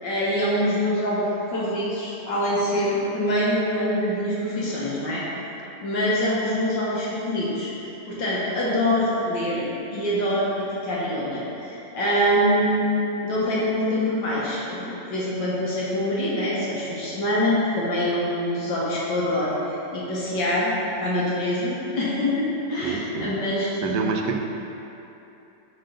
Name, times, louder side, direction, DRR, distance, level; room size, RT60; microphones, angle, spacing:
voice 1, 0.0-5.2 5.8-7.7 8.1-24.0, equal, 80° left, -7 dB, 1.8 m, -25 dB
voice 2, 22.8-23.4 23.8-24.4, right 5 dB, 80° right, 4 dB, 1.2 m, -27 dB
6.6 x 3.3 x 5.0 m, 2.9 s
omnidirectional pair, 1.9 m